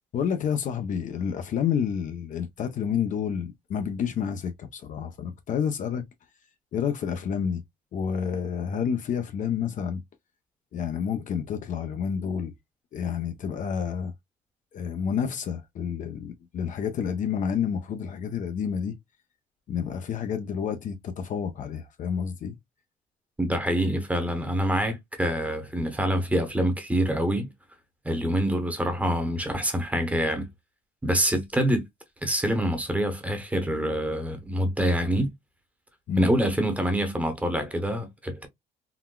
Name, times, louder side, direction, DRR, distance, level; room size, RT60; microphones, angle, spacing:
voice 1, 0.1-6.1 6.7-7.6 7.9-10.0 10.7-12.5 12.9-14.1 14.7-19.0 19.7-22.6 36.1-36.3, left 7 dB, 50° left, 0.5 m, -29 dB
voice 2, 23.4-27.5 28.0-30.5 31.0-31.8 32.2-35.3 36.2-38.5, equal, 10° right, 0.8 m, -26 dB
3.8 x 2.1 x 2.2 m
cardioid pair, 110°, 17 cm